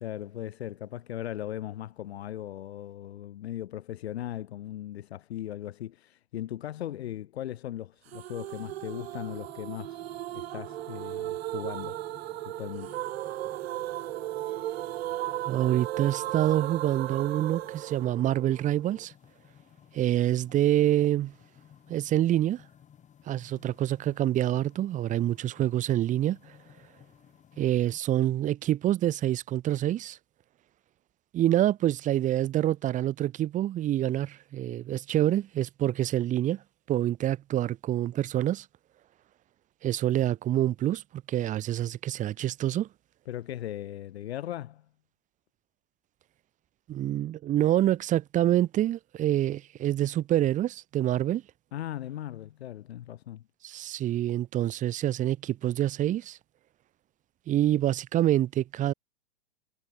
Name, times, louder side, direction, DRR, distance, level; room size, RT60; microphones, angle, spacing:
voice 1, 0.0-10.0 10.3-12.0 12.4-13.0 43.3-44.9 51.7-53.4, left 12 dB, 75° left, 1.1 m, -38 dB
sound 1, 8.1-19.1, right 15 dB, 70° right, 0.6 m, -36 dB
sound 2, 8.5-28.0, left 9 dB, 20° left, 6.9 m, -57 dB
voice 2, 15.4-19.1 19.9-21.3 21.9-22.6 23.3-26.4 27.6-30.2 31.3-36.6 36.9-38.6 39.8-41.0 41.3-42.9 46.9-51.4 53.6-56.4 57.5-58.9, right 12 dB, 25° right, 1.2 m, -26 dB
hypercardioid pair, 125°, 32 cm